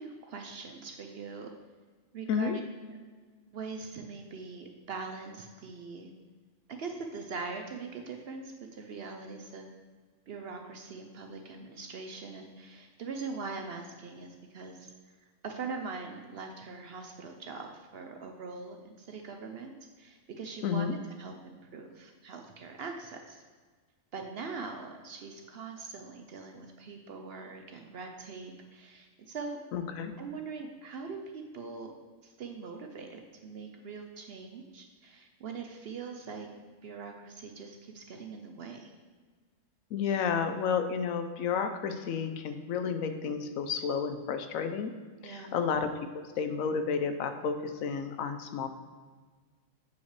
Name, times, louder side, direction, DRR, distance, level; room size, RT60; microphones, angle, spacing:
voice 1, 0.0-1.5 2.1-2.6 3.5-6.1 6.7-9.7 10.3-23.4 24.1-29.6 30.2-31.9 32.2-36.5 36.8-38.9 45.2-45.6, right 4 dB, 60° right, 3 dB, 0.7 m, -42 dB
voice 2, 20.6-21.0 29.7-30.1 39.9-45.0 45.2-48.7, left 6 dB, 90° left, 8 dB, 1.0 m, -31 dB
8.1 x 5.2 x 3.3 m, 1.4 s
omnidirectional pair, 1.4 m